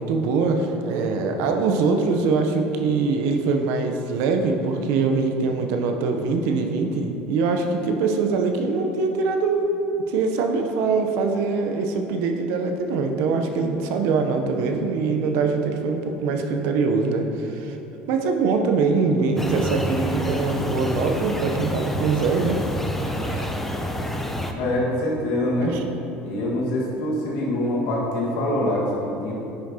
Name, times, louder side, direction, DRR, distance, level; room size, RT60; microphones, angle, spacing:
voice 1, 0.0-17.8 18.1-22.6 23.1-23.5 25.6-25.8, right 4 dB, 75° right, 5 dB, 0.7 m, -23 dB
sound 1, 19.4-24.5, equal, 5° left, 0.6 m, -28 dB
voice 2, 24.5-25.8 26.2-29.3, left 1 dB, 75° left, -4 dB, 1.6 m, -24 dB
9.6 x 5.9 x 2.8 m, 3.0 s
supercardioid pair, 95°, 4 cm